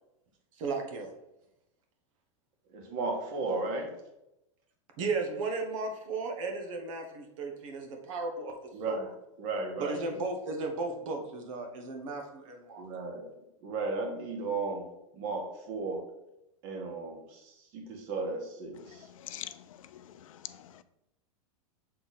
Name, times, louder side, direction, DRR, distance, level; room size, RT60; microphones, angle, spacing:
voice 1, 0.6-1.1 5.0-8.6 8.8-9.1 9.8-12.8, right 3 dB, 70° right, 3 dB, 1.4 m, -35 dB
voice 2, 2.7-3.9 8.7-9.1 9.4-10.2 12.8-13.3 13.6-14.9 15.1-16.0 16.6-19.1, right 3 dB, 55° right, 1 dB, 1.9 m, -35 dB
voice 3, 19.2-20.8, left 12 dB, 80° left, 14 dB, 0.5 m, -45 dB
6.8 x 3.7 x 4.2 m, 0.89 s
hypercardioid pair, 110°, 17 cm